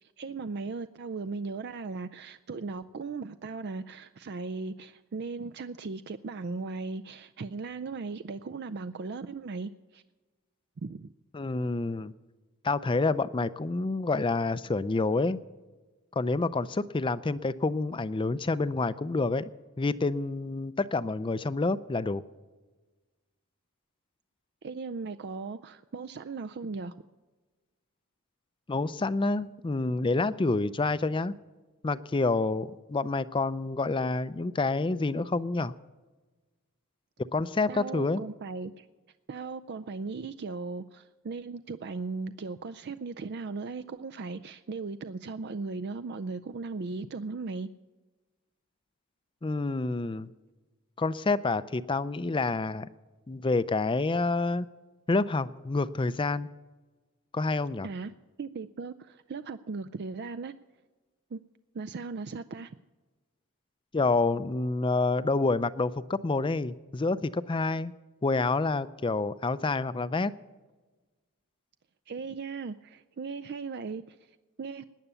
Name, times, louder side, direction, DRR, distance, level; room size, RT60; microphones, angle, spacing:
voice 1, 0.0-10.0 10.8-11.1 24.6-26.9 37.7-38.9 39.3-47.7 57.8-58.1 58.4-60.5 61.3-61.4 61.7-62.7 72.1-74.8, right 4 dB, 50° right, 11 dB, 0.4 m, -37 dB
voice 2, 11.3-12.1 12.6-15.4 16.2-19.5 19.8-22.2 28.7-31.3 31.8-35.7 37.3-38.2 49.4-50.3 51.0-52.9 53.3-54.7 55.1-56.5 57.3-57.9 63.9-67.9 68.2-70.3, left 3 dB, 20° left, 15 dB, 0.4 m, -28 dB
18.0 x 10.0 x 6.8 m, 1.3 s
head